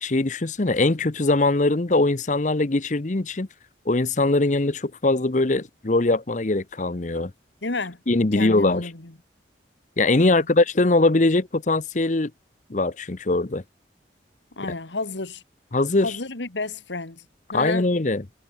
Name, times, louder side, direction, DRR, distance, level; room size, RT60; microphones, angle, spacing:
voice 1, 0.0-3.5 3.9-7.3 8.1-8.9 10.0-12.3 12.7-13.6 15.7-16.1 17.5-18.2, left 2 dB, 45° left, 0.9 m, -21 dB
voice 2, 7.6-8.0 8.3-9.1 10.2-10.5 14.6-15.4 16.0-17.3 17.5-17.9, left 3 dB, 80° left, 2.0 m, -31 dB
head